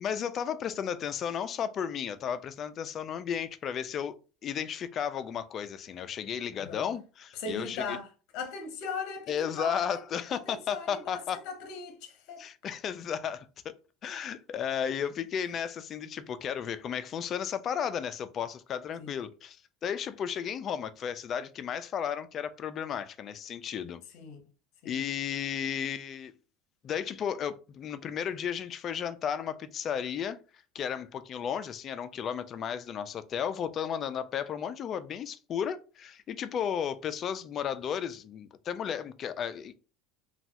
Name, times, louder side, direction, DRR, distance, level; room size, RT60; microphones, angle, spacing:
voice 1, 0.0-4.2 4.4-8.0 9.3-11.4 12.4-13.7 14.0-24.0 24.8-26.3 26.8-30.4 30.7-39.8, left 8 dB, 35° left, 0.3 m, -34 dB
voice 2, 6.5-6.9 7.3-8.1 8.3-9.9 10.3-12.5 19.0-19.1 24.1-24.4 24.8-25.0, left 4 dB, 55° left, 0.7 m, -39 dB
3.1 x 2.2 x 2.8 m
cardioid pair, 150°, 0 cm